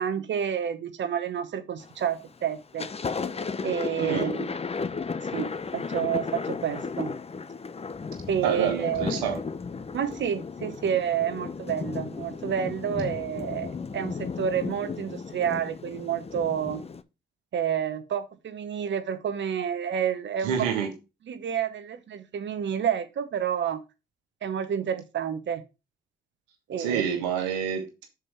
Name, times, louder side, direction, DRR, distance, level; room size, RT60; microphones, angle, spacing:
voice 1, 0.0-2.9 3.6-4.5 5.3-7.1 8.3-9.2 9.9-16.8 17.5-20.5 21.3-23.8 24.4-25.6 26.7-27.0, right 8 dB, 60° right, 10 dB, 0.9 m, -29 dB
Thunder, 1.8-2.2 2.6-17.0, left 5 dB, 30° left, 0.7 m, -34 dB
voice 2, 8.4-9.4 20.4-20.9 26.8-28.1, right 8 dB, 90° right, 5 dB, 1.2 m, -28 dB
6.2 x 4.6 x 4.8 m, 0.28 s
hypercardioid pair, 40°, 21 cm